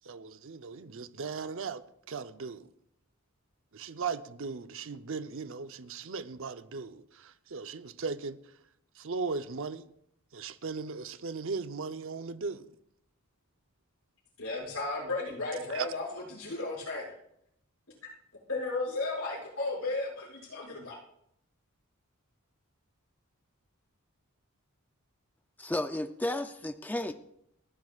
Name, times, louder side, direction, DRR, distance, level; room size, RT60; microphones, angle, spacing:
voice 1, 0.0-1.8 2.1-2.7 3.7-8.4 9.0-9.8 10.3-12.7 15.7-15.9, right 4 dB, 65° right, 0.7 m, -37 dB
voice 2, 14.4-17.1 18.5-21.0, left 3 dB, 80° left, 6.3 m, -34 dB
voice 3, 25.6-27.1, left 1 dB, 10° left, 0.4 m, -33 dB
29.5 x 11.0 x 2.4 m
head